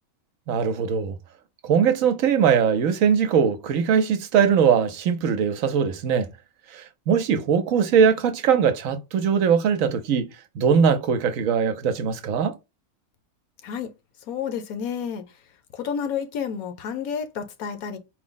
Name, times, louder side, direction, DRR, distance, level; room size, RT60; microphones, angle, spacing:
voice 1, 0.5-1.1 1.6-6.3 6.7-12.6, right 7 dB, 70° right, 0.9 m, -21 dB
voice 2, 14.3-15.2 15.7-18.0, left 7 dB, 75° left, 1.2 m, -30 dB
4.7 x 2.0 x 3.8 m
omnidirectional pair, 1.6 m